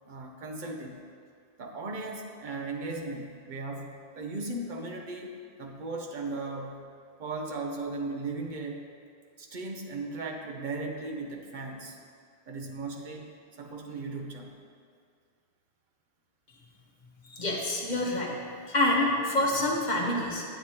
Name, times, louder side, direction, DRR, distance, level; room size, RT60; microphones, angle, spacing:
voice 1, 0.1-1.0 1.6-6.8 7.2-8.9 9.4-12.0 12.5-13.3 13.6-14.5, right 3 dB, 50° right, 2 dB, 0.9 m, -37 dB
voice 2, 17.3-18.3 18.7-20.4, left 1 dB, 45° left, -2 dB, 1.1 m, -27 dB
8.2 x 7.9 x 2.9 m, 2.2 s
omnidirectional pair, 1.1 m